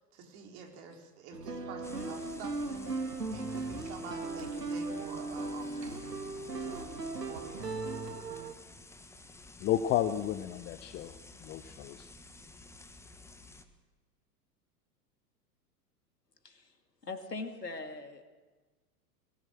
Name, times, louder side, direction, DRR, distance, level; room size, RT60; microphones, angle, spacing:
voice 1, 0.1-6.1 6.6-6.9 7.3-7.9, right 5 dB, 45° right, 3 dB, 4.2 m, -48 dB
sound 1, 1.3-8.5, right 3 dB, 80° right, 1.8 m, -37 dB
sound 2, 1.8-13.6, left 2 dB, 5° left, 1.4 m, -52 dB
voice 2, 9.6-11.1 11.4-12.1, left 11 dB, 20° left, 10 dB, 0.7 m, -32 dB
voice 3, 16.4-16.8 17.0-18.2, left 3 dB, 80° left, 7 dB, 2.4 m, -41 dB
21.5 x 18.5 x 7.7 m, 1.3 s
figure-of-eight pair, 95°, 47 cm